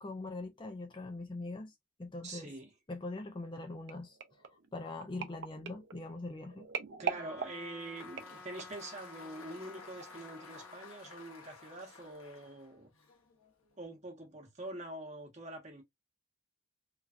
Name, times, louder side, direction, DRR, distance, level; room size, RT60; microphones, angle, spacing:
voice 1, 0.0-1.7 2.0-2.5 2.9-4.2 4.7-6.7, left 2 dB, 20° left, 0.4 m, -42 dB
voice 2, 2.2-2.7 7.0-12.9 13.8-15.8, right 1 dB, 30° right, 0.9 m, -45 dB
sound 1, 3.9-8.9 9.5-9.7 10.0-10.1, right 6 dB, 55° right, 0.5 m, -42 dB
Trumpet, 7.1-10.8, left 2 dB, 5° left, 0.9 m, -53 dB
Applause, 7.5-13.8, left 5 dB, 80° left, 1.2 m, -55 dB
3.1 x 2.3 x 2.4 m
head